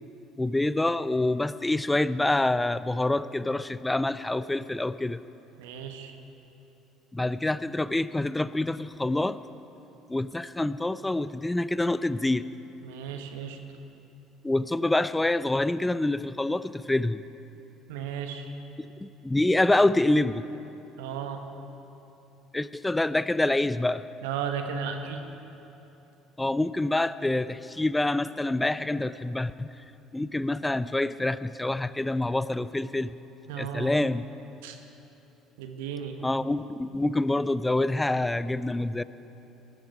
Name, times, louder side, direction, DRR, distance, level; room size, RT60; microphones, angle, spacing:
voice 1, 0.4-5.2 7.1-9.4 10.1-12.5 14.4-17.2 18.8-20.5 22.5-24.0 26.4-29.7 30.1-33.1 33.6-34.3 36.2-39.0, left 2 dB, 10° left, 16 dB, 0.5 m, -26 dB
voice 2, 5.6-6.1 12.8-13.6 17.9-18.5 21.0-21.4 24.2-25.2 33.5-33.9 34.6-34.8 35.6-36.2, right 7 dB, 70° right, 6 dB, 1.1 m, -34 dB
19.0 x 13.0 x 5.0 m, 3.0 s
figure-of-eight pair, 60°, 0 cm